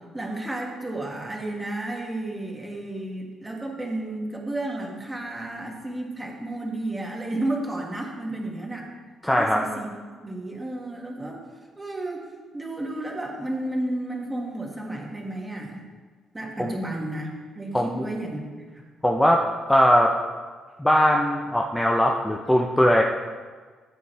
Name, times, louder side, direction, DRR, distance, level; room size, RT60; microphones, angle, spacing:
voice 1, 0.1-8.9 9.3-9.9 10.2-11.4 11.8-12.2 12.5-15.9 16.3-18.8, right 1 dB, 15° right, -1 dB, 2.2 m, -32 dB
voice 2, 9.2-9.6 16.6-16.7 17.7-18.1 19.0-19.4 19.7-20.1 20.8-23.0, equal, 10° left, 0 dB, 0.8 m, -20 dB
13.5 x 8.4 x 3.5 m, 1.5 s
cardioid pair, 90°, 0 cm